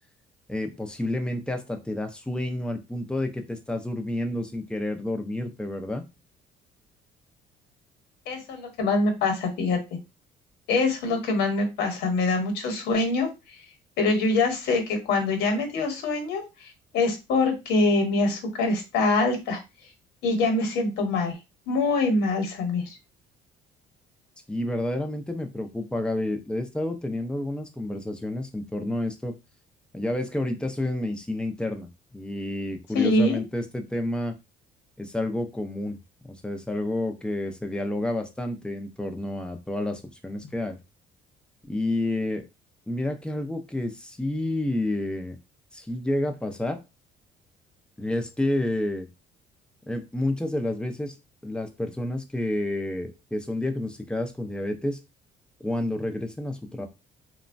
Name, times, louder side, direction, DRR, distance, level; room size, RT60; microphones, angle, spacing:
voice 1, 0.5-6.0 24.5-29.4 29.9-34.4 35.0-36.0 36.3-40.8 41.6-42.5 42.9-45.4 45.7-46.8 48.0-49.1 49.9-51.1 51.4-55.0 55.6-56.9, left 1 dB, 5° left, 5 dB, 0.5 m, -29 dB
voice 2, 8.3-9.8 10.7-13.3 14.0-19.6 20.2-21.3 21.7-22.9 32.9-33.4, left 3 dB, 85° left, 4 dB, 1.0 m, -24 dB
3.0 x 2.1 x 2.5 m, 0.25 s
cardioid pair, 110°, 17 cm